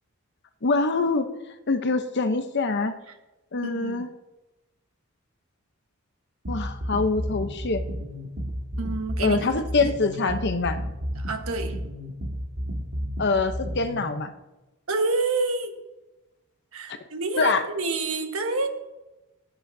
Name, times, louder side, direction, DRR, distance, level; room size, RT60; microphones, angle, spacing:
voice 1, 0.6-1.3 1.7-2.9 3.5-4.1 6.5-7.8 9.2-10.8 13.2-14.3 17.4-17.6, left 3 dB, 55° left, 9 dB, 0.8 m, -24 dB
voice 2, 3.6-4.1 8.8-9.5 9.8-9.9 11.2-11.8 14.9-15.8 16.7-18.7, right 3 dB, 80° right, 6 dB, 1.3 m, -28 dB
sound 1, 6.4-14.0, equal, 65° right, 1.9 m, -32 dB
19.0 x 9.0 x 2.7 m, 1.0 s
head